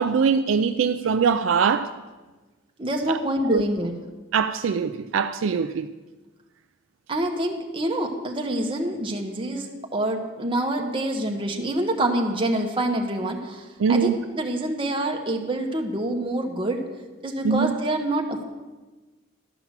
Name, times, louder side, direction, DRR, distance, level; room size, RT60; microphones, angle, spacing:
voice 1, 0.0-1.9 3.5-3.6 4.3-5.9 13.8-14.2 17.4-17.7, right 6 dB, 70° right, 0.4 m, -22 dB
voice 2, 2.8-3.9 7.1-16.8 17.2-18.4, right 1 dB, 25° right, 1.1 m, -26 dB
12.0 x 5.8 x 7.3 m
head